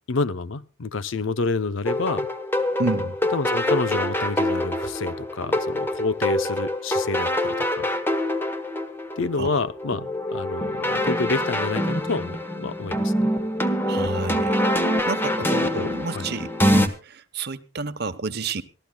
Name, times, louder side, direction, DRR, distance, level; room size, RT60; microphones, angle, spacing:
voice 1, 0.1-2.3 3.3-7.9 9.2-10.0 10.3-13.3 15.7-16.3, left 3 dB, 70° left, 0.7 m, -28 dB
sound 1, 1.9-16.9, left 1 dB, 10° left, 1.1 m, -25 dB
voice 2, 2.8-3.2 9.4-9.6 10.0-10.1 13.9-14.6 15.1-18.6, right 3 dB, 55° right, 0.9 m, -30 dB
26.0 x 14.0 x 2.3 m
head